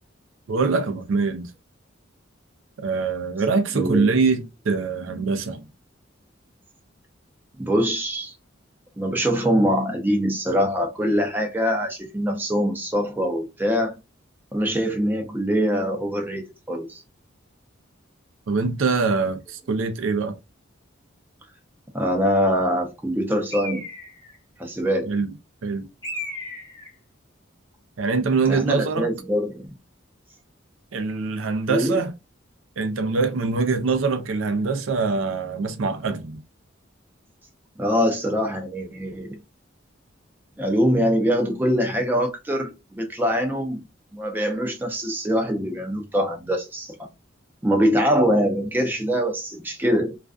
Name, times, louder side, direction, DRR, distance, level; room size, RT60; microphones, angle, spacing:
voice 1, 0.5-1.5 2.8-5.7 18.5-20.4 25.0-25.3 25.6-25.9 28.0-29.1 30.9-32.1 32.8-36.4, right 4 dB, 80° right, 0.5 m, -24 dB
voice 2, 3.7-4.1 7.6-8.3 9.0-13.9 14.5-17.0 21.9-23.8 24.6-25.1 28.5-29.7 31.7-32.0 37.8-39.4 40.6-43.8 44.1-47.0 47.6-50.2, equal, 10° right, 0.5 m, -23 dB
Bird, 23.5-24.4 26.0-26.9, left 1 dB, 20° left, 0.8 m, -35 dB
2.4 x 2.2 x 2.3 m
head